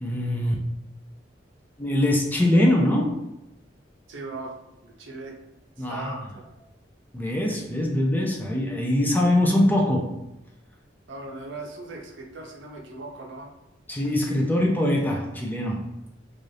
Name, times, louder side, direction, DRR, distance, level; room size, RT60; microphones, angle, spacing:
voice 1, 0.0-0.6 1.8-3.3 5.8-6.3 7.1-10.2 13.9-15.9, left 1 dB, 10° left, 0 dB, 0.3 m, -23 dB
voice 2, 4.1-4.5 4.8-5.4 5.8-6.4 11.1-13.5, right 2 dB, 70° right, 0 dB, 0.6 m, -39 dB
2.6 x 2.4 x 3.1 m, 0.90 s
head